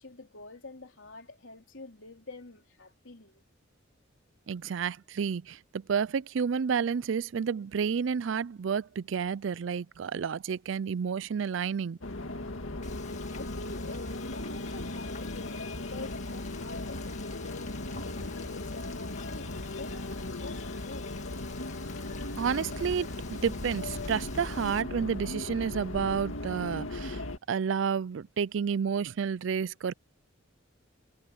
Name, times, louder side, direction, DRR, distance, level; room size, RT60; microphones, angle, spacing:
voice 1, 0.0-3.4 13.3-21.1, left 3 dB, 70° left, 3.7 m, -47 dB
voice 2, 4.5-12.0 22.4-27.2 27.5-29.9, right 6 dB, 65° right, 0.4 m, -30 dB
sound 1, 12.0-27.4, left 2 dB, 85° left, 2.2 m, -37 dB
Frying (food), 12.8-24.8, left 7 dB, 35° left, 2.1 m, -50 dB
sound 2, 17.9-18.8 23.3-24.1, equal, 50° right, 4.6 m, -50 dB
head